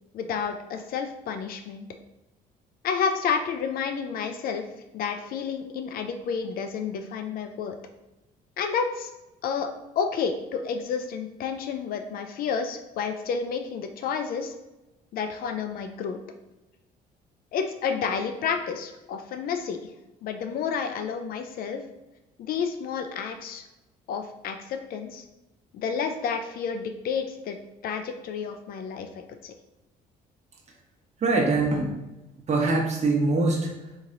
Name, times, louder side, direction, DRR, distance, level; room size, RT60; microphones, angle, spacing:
voice 1, 0.1-1.9 2.8-4.6 4.9-7.7 8.6-9.1 9.4-9.7 10.0-14.5 15.1-16.2 17.5-19.8 20.2-21.8 22.4-23.6 24.1-25.2 25.7-27.6 27.8-29.5, left 6 dB, 60° left, 7 dB, 0.5 m, -30 dB
voice 2, 31.2-31.9 32.5-34.0, right 3 dB, 40° right, -1 dB, 1.0 m, -23 dB
4.4 x 2.9 x 2.6 m, 1.0 s
cardioid pair, 110°, 17 cm